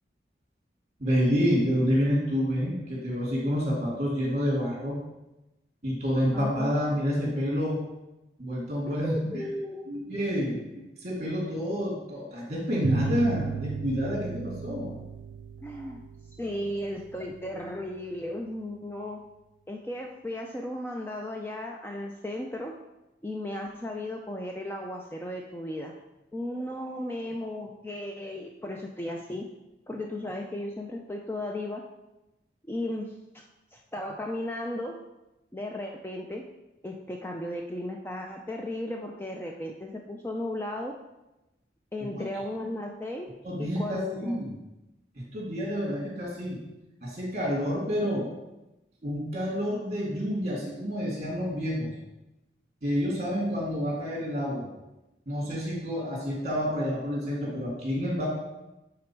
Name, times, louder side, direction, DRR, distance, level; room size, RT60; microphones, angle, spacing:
voice 1, 1.0-5.0 5.8-7.8 8.4-9.5 9.9-10.6 11.0-14.9 42.1-42.2 43.4-44.5 45.3-46.6 47.0-48.3 49.0-51.9 52.8-54.7 55.3-58.3, equal, 35° right, -4 dB, 2.6 m, -28 dB
voice 2, 6.3-6.8 8.9-9.9 15.6-16.0 16.4-19.2 19.7-22.7 23.2-25.9 26.3-29.5 29.9-31.8 32.7-33.1 33.7-35.0 35.5-36.4 36.8-40.9 41.9-43.3 43.6-44.4, left 1 dB, 10° left, 1 dB, 0.4 m, -35 dB
sound 1, 12.8-18.0, right 7 dB, 85° right, 0.3 m, -36 dB
8.5 x 3.9 x 4.5 m, 0.98 s
head